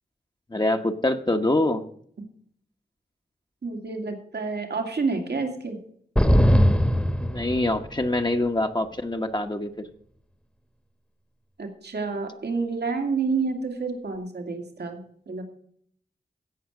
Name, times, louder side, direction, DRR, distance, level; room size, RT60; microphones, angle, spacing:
voice 1, 0.5-1.9 7.2-9.9, left 1 dB, 25° left, 5 dB, 1.1 m, -25 dB
voice 2, 3.6-5.8 11.6-15.4, right 4 dB, 80° right, 3 dB, 2.3 m, -29 dB
sound 1, 6.2-8.1, equal, 5° left, 1.2 m, -20 dB
16.5 x 5.6 x 6.4 m, 0.63 s
cardioid pair, 40°, 17 cm